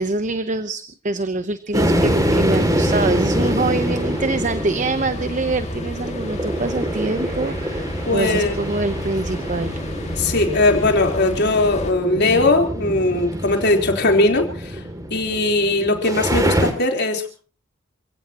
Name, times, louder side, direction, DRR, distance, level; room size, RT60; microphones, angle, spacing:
voice 1, 0.0-9.8, right 2 dB, 40° right, 11 dB, 0.9 m, -25 dB
sound 1, 1.7-16.7, equal, 15° right, 2.6 m, -25 dB
sound 2, 1.9-11.9, left 1 dB, 35° left, 2.5 m, -31 dB
voice 2, 8.1-8.6 10.2-14.8 15.1-17.3, left 2 dB, 55° left, 3 dB, 3.9 m, -19 dB
28.5 x 16.5 x 3.0 m, 0.39 s
head